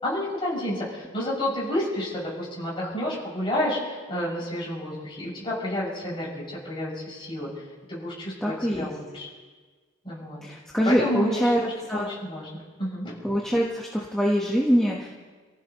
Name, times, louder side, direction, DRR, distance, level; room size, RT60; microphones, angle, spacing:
voice 1, 0.0-7.5 7.9-9.3 10.0-10.4 10.8-13.1, left 1 dB, 25° left, -6 dB, 6.2 m, -30 dB
voice 2, 8.4-8.9 10.4-11.6 11.9-12.1 13.2-15.1, equal, 5° left, -4 dB, 1.2 m, -24 dB
29.5 x 15.0 x 3.0 m, 1.4 s
head